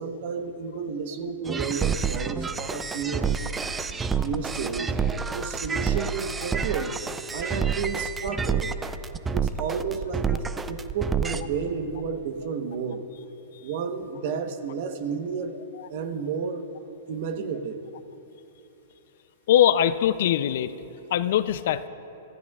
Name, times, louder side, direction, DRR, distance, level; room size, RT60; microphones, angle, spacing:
voice 1, 0.0-3.7 4.2-5.0 5.3-6.9 7.3-8.7 9.3-13.0 13.6-15.6 15.9-16.7 17.1-17.8, right 6 dB, 50° right, 8 dB, 1.1 m, -31 dB
sound 1, 1.5-11.4, right 6 dB, 10° right, 0.4 m, -28 dB
voice 2, 19.5-20.7 21.1-21.9, left 10 dB, 60° left, 13 dB, 0.5 m, -21 dB
25.5 x 15.0 x 2.4 m, 3.0 s
hypercardioid pair, 155°, 0 cm